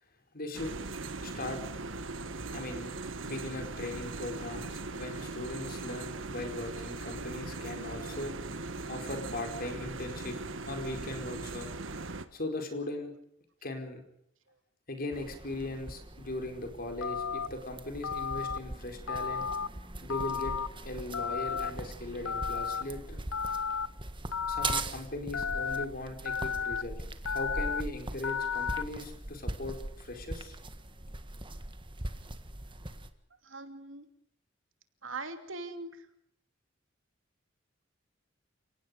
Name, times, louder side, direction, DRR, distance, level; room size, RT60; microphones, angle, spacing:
voice 1, 0.3-0.7 1.2-1.6 2.5-2.9 3.2-8.3 8.9-10.4 10.7-11.7 12.3-13.1 13.6-14.0 14.9-19.5 20.0-20.6 20.8-23.2 24.5-30.6, left 2 dB, 50° left, 4 dB, 4.7 m, -39 dB
sound 1, 0.5-12.3, right 3 dB, 75° right, 1.5 m, -39 dB
sound 2, 15.1-33.1, right 2 dB, 25° right, 1.6 m, -41 dB
Telephone, 17.0-17.5 18.0-18.6 19.1-19.7 20.1-20.7 21.1-21.7 22.2-22.8 23.3-23.9 24.3-24.8 25.3-25.8 26.2-26.8 27.2-27.8 28.2-28.8, left 6 dB, 80° left, 0.8 m, -33 dB
voice 2, 33.4-34.1 35.0-36.1, right 3 dB, 90° right, 7 dB, 2.8 m, -42 dB
29.5 x 18.0 x 5.3 m, 0.71 s
head